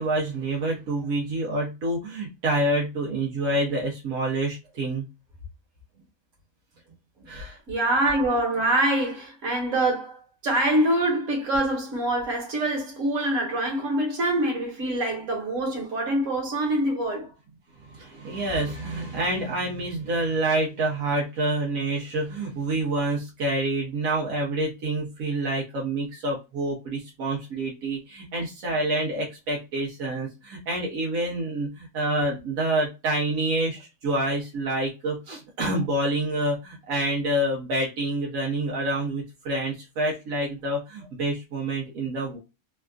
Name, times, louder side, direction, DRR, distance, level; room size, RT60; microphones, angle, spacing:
voice 1, 0.0-5.0 7.3-7.6 17.8-42.4, right 1 dB, 85° right, 1.2 m, -27 dB
voice 2, 7.7-17.3, right 1 dB, 65° right, 1.6 m, -25 dB
3.4 x 2.4 x 2.2 m
omnidirectional pair, 1.4 m